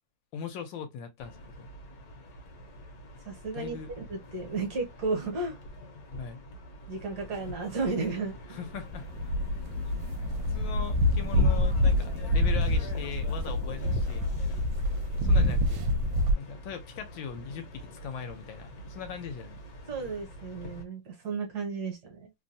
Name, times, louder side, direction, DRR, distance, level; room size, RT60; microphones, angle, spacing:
voice 1, 0.3-1.7 3.5-3.9 6.2-6.4 8.5-9.3 10.5-14.6 15.2-15.8 16.4-19.6, left 7 dB, 75° left, 1.3 m, -40 dB
sound 1, 1.2-20.8, left 1 dB, 55° left, 1.2 m, -46 dB
voice 2, 3.2-3.8 4.1-5.6 6.9-8.6 19.9-22.3, right 4 dB, 60° right, 1.3 m, -33 dB
sound 2, 8.8-16.3, left 1 dB, 80° right, 1.3 m, -26 dB
3.2 x 2.1 x 2.6 m
omnidirectional pair, 2.2 m